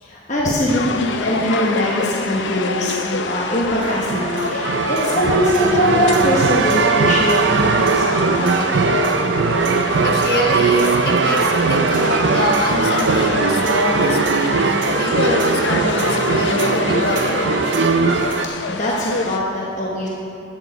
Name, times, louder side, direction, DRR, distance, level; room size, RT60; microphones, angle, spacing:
voice 1, 0.0-9.0 18.7-20.1, left 1 dB, 40° left, -4 dB, 1.1 m, -22 dB
sound 1, 0.7-19.4, left 4 dB, 80° left, 0.6 m, -27 dB
sound 2, 3.8-18.5, right 4 dB, 75° right, 0.5 m, -19 dB
voice 2, 10.0-17.4, left 1 dB, 55° left, -1 dB, 1.4 m, -25 dB
12.5 x 8.9 x 4.1 m, 2.7 s
head